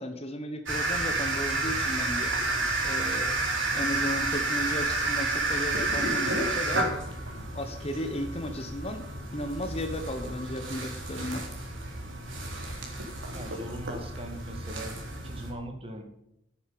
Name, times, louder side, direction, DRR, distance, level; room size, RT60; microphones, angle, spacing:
voice 1, 0.0-2.3 2.8-3.4 3.7-6.9 7.5-9.0 9.3-11.5, left 1 dB, 30° left, 7 dB, 1.2 m, -35 dB
sound 1, 0.7-15.5, right 2 dB, 75° right, 3.8 m, -31 dB
voice 2, 13.3-16.0, right 1 dB, 30° right, 5 dB, 2.3 m, -40 dB
9.7 x 8.0 x 8.7 m, 0.80 s
head